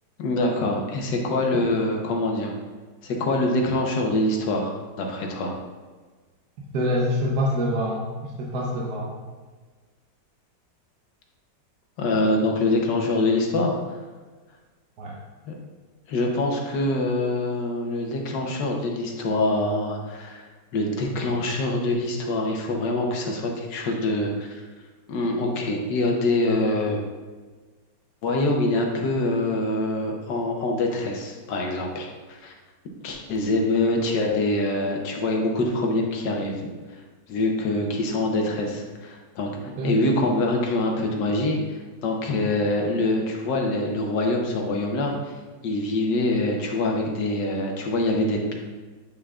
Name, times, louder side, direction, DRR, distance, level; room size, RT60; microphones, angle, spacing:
voice 1, 0.2-2.5 3.0-5.6 12.0-14.0 15.5-15.6 16.1-20.5 20.7-24.6 25.1-27.0 28.2-32.5 33.0-36.5 37.3-45.3 45.6-48.5, left 2 dB, 75° left, 1 dB, 1.5 m, -25 dB
voice 2, 6.7-8.0 8.4-9.1 15.0-15.1 39.8-40.0, equal, 65° right, -4 dB, 1.3 m, -25 dB
8.1 x 5.7 x 2.3 m, 1.4 s
omnidirectional pair, 1.9 m